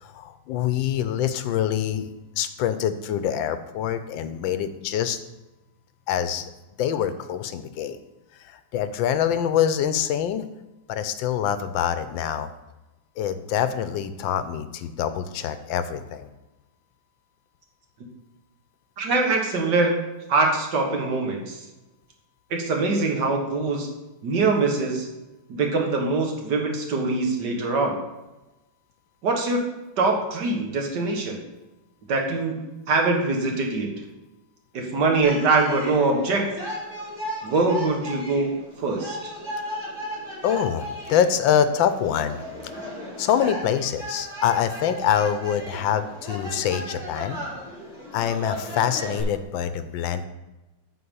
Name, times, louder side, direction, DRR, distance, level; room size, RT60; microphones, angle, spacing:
voice 1, 0.0-5.2 6.1-6.5 6.8-8.0 8.4-10.4 10.9-12.5 13.2-16.3 40.4-42.4 42.7-42.8 43.2-47.4 48.1-50.2, left 9 dB, 80° left, 11 dB, 1.3 m, -25 dB
voice 2, 19.0-20.0 20.3-21.6 22.5-23.9 24.2-25.1 25.5-28.0 29.2-29.6 30.0-31.4 32.1-33.9 34.7-36.5 37.4-39.2, right 3 dB, 65° right, 1 dB, 1.9 m, -23 dB
sound 1, 35.2-49.2, equal, 15° right, 3.1 m, -36 dB
8.6 x 4.5 x 6.9 m, 1.0 s
omnidirectional pair, 2.1 m